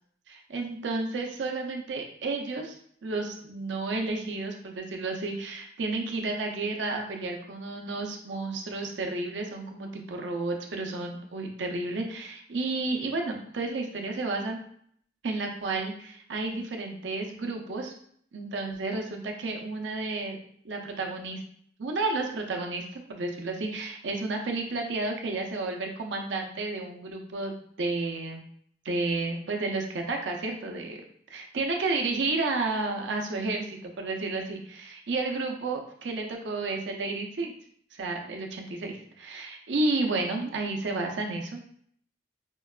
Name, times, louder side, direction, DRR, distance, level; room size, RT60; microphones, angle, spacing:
voice 1, 0.3-14.6 15.2-17.9 18.3-20.4 20.6-21.4 21.8-28.4 28.8-31.0 31.3-37.5 37.9-41.6, right 3 dB, 90° right, 2 dB, 0.6 m, -31 dB
4.5 x 2.2 x 2.3 m, 0.63 s
head